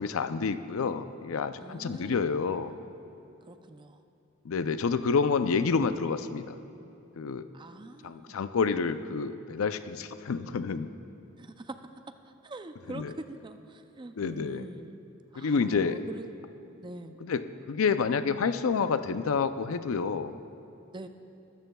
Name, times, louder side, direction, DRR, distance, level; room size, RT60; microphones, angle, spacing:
voice 1, 0.0-2.7 4.4-6.6 7.2-7.4 8.0-10.9 12.9-13.1 14.2-14.7 15.4-16.0 17.2-17.4 17.7-20.3, left 5 dB, 75° left, 11 dB, 0.5 m, -28 dB
voice 2, 1.6-2.3 3.4-4.0 7.5-8.4 11.4-15.1 15.3-16.3 16.8-17.2 20.9-21.1, right 2 dB, 20° right, 8 dB, 0.5 m, -44 dB
21.5 x 13.5 x 2.3 m, 2.7 s
head